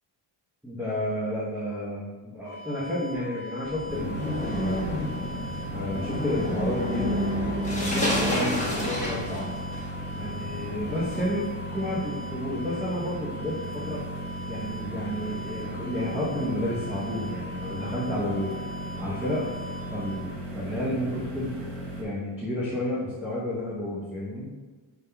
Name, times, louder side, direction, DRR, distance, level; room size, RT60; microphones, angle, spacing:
voice 1, 0.6-4.8 5.7-9.5 10.2-14.0 14.5-18.6 19.0-19.5 19.9-20.3 20.5-21.5 22.0-24.5, left 1 dB, 5° right, -8 dB, 0.7 m, -31 dB
sound 1, 2.4-20.2, equal, 50° right, 1.5 m, -41 dB
sound 2, 3.6-11.2, equal, 15° left, 1.0 m, -30 dB
sound 3, 3.9-22.0, right 1 dB, 70° right, 1.2 m, -37 dB
5.5 x 3.5 x 2.2 m, 1.3 s
wide cardioid pair, 110°, 46 cm